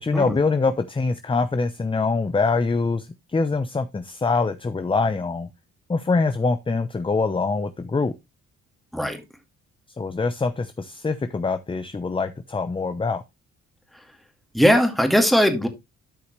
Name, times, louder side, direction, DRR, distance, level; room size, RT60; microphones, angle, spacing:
voice 1, 0.0-5.5 5.9-8.2 10.0-13.2, left 4 dB, 15° left, 0.7 m, -24 dB
voice 2, 14.5-15.7, equal, ahead, 2.2 m, -19 dB
12.5 x 5.6 x 3.2 m
cardioid pair, 90°, 30 cm